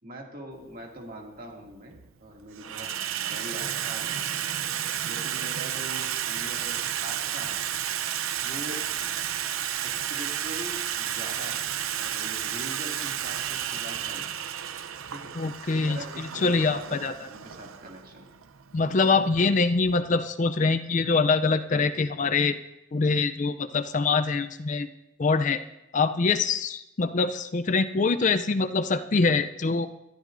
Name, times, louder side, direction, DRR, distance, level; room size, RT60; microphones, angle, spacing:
voice 1, 0.0-2.0 2.2-2.9 3.1-4.4 5.0-7.6 8.4-8.8 9.8-14.4 15.1-15.3 15.7-18.3 19.4-19.5, equal, 45° right, 0 dB, 2.4 m, -42 dB
Water tap faucet / Sink (filling or washing), 0.6-0.7 1.7-2.1 2.4-20.0, right 10 dB, 85° right, 0.6 m, -32 dB
voice 2, 15.4-17.3 18.7-22.6 22.9-24.9 25.2-25.6 25.9-29.9, left 4 dB, 40° left, 10 dB, 0.4 m, -24 dB
21.5 x 13.0 x 2.6 m, 0.90 s
head